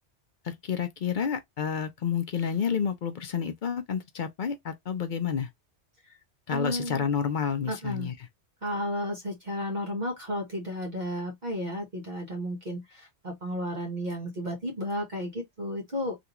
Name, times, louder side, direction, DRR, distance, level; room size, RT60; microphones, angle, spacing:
voice 1, 0.4-5.5 6.5-8.1, left 7 dB, 55° left, 0.6 m, -30 dB
voice 2, 6.5-7.1 7.7-8.1 8.6-16.2, equal, 40° right, 1.1 m, -33 dB
3.4 x 2.5 x 2.9 m
omnidirectional pair, 1.2 m